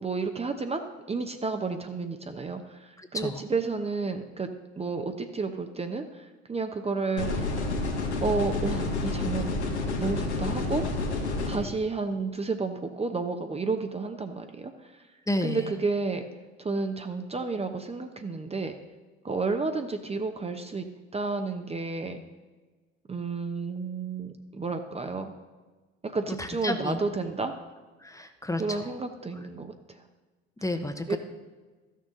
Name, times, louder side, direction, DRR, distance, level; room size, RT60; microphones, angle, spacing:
voice 1, 0.0-4.5 4.8-7.5 8.2-9.6 10.0-10.9 11.5-15.1 15.4-16.2 16.6-18.7 19.2-20.9 21.1-22.2 23.1-25.3 26.0-27.5 28.6-30.0 31.1-31.2, right 4 dB, 20° right, 6 dB, 0.8 m, -31 dB
voice 2, 3.0-3.4 15.3-15.7 26.4-27.0 28.0-28.9 30.6-31.2, left 1 dB, 10° left, 7 dB, 0.9 m, -31 dB
sound 1, 7.2-11.6, left 3 dB, 85° left, 1.7 m, -29 dB
14.0 x 6.6 x 3.8 m, 1.3 s
hypercardioid pair, 65°, 33 cm